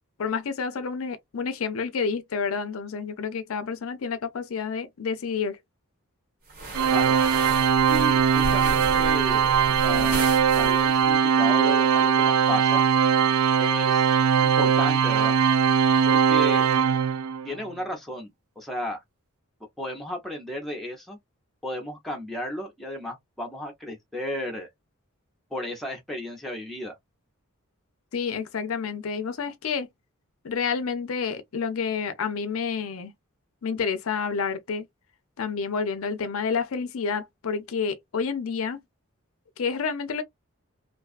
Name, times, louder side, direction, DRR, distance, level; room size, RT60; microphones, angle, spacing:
voice 1, 0.2-5.6 28.1-29.9 30.4-33.1 33.6-34.8 35.4-38.8 39.6-40.2, left 5 dB, 70° left, 0.5 m, -29 dB
sound 1, 6.5-11.1, right 1 dB, 45° right, 1.1 m, -34 dB
Organ, 6.7-17.5, right 7 dB, 80° right, 0.3 m, -21 dB
voice 2, 7.9-10.3 10.6-12.8 13.6-14.1 14.4-15.3 16.0-16.7 17.4-19.0 19.8-21.2 21.6-24.7 25.5-26.9, equal, ahead, 0.7 m, -34 dB
2.5 x 2.3 x 2.4 m
head